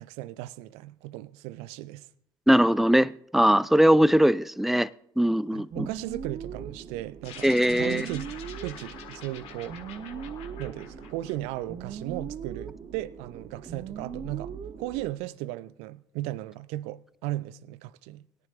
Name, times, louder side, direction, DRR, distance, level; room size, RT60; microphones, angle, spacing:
voice 1, 0.0-2.1 5.5-7.5 7.8-8.3 8.6-9.8 10.6-18.3, right 16 dB, 65° right, 0.5 m, -36 dB
voice 2, 2.5-4.9 5.2-5.9 7.4-8.1, equal, ahead, 0.4 m, -21 dB
sound 1, 5.7-15.2, right 7 dB, 45° right, 0.9 m, -40 dB
sound 2, 7.2-11.9, left 7 dB, 60° left, 1.6 m, -46 dB
21.0 x 10.5 x 2.5 m
figure-of-eight pair, 50°, 11 cm